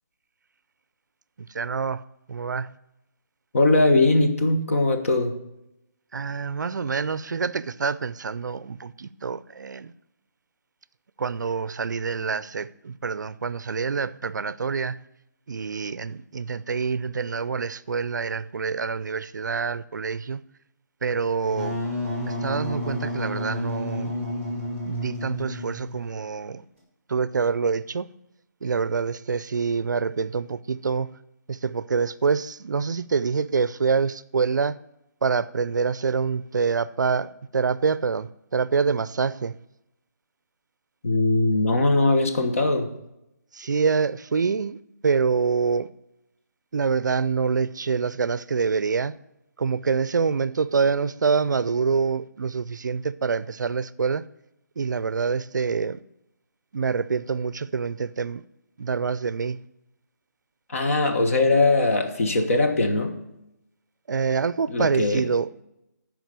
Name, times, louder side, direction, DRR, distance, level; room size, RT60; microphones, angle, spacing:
voice 1, 1.4-2.0 2.3-2.8 6.1-9.9 11.2-15.0 15.5-20.4 21.0-21.8 22.2-24.2 24.9-26.6 27.1-28.1 28.6-31.2 31.5-34.8 35.2-39.6 43.5-45.9 46.7-49.1 49.6-54.3 54.8-56.0 56.7-58.4 58.8-59.6 64.1-65.5, right 5 dB, 75° right, 0.4 m, -26 dB
voice 2, 3.5-5.3 41.0-42.9 60.7-63.1 64.7-65.2, left 2 dB, 45° left, 1.3 m, -20 dB
Wind instrument woodwind instrument, 21.5-26.0, left 1 dB, 10° left, 1.9 m, -31 dB
9.3 x 5.0 x 6.6 m
hypercardioid pair, 170°, 10 cm